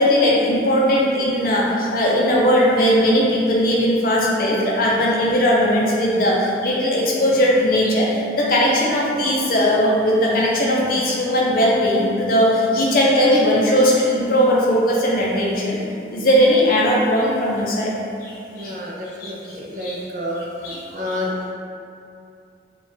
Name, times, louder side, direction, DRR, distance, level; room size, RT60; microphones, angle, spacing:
voice 1, 0.0-8.1 8.4-15.8 16.1-17.9 18.2-18.7 19.2-20.0 20.6-21.2, equal, 50° left, -4 dB, 0.6 m, -18 dB
voice 2, 18.5-20.4 20.9-21.5, left 1 dB, 45° right, -4 dB, 0.5 m, -29 dB
3.4 x 2.4 x 3.8 m, 2.5 s
head